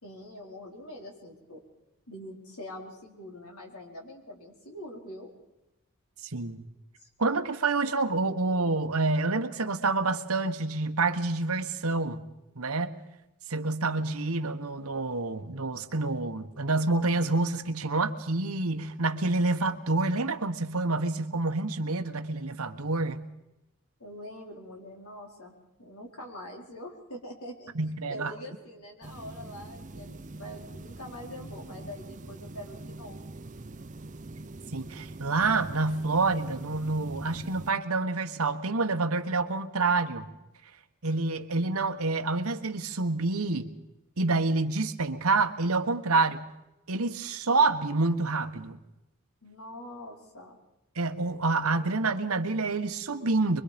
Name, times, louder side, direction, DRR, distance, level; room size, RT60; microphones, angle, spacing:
voice 1, 0.0-1.6 2.1-5.3 7.0-7.1 24.0-25.5 25.8-27.7 28.1-33.4 49.4-50.6, left 1 dB, 85° left, 1 dB, 4.7 m, -44 dB
voice 2, 6.2-6.6 7.2-12.2 12.5-12.9 13.5-23.2 27.7-28.3 34.7-40.3 41.0-43.7 44.2-46.4 46.9-48.8 50.9-53.6, right 3 dB, 85° right, 7 dB, 1.5 m, -28 dB
sound 1, 29.0-37.7, right 2 dB, 35° right, 0.7 m, -44 dB
24.5 x 23.5 x 5.3 m, 0.91 s
head